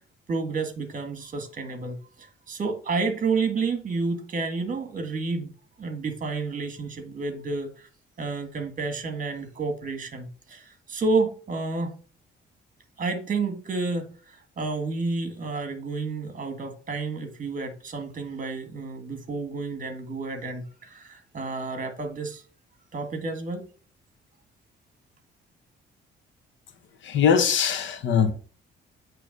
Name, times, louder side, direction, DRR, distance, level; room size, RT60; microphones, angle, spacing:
voice 1, 0.3-5.5 5.8-7.9 8.2-11.9 13.0-22.4 22.9-23.7, right 3 dB, 40° right, 1.7 m, -30 dB
voice 2, 27.0-28.3, left 7 dB, 70° left, 1.1 m, -21 dB
8.3 x 3.1 x 5.2 m
cardioid pair, 90°, 20 cm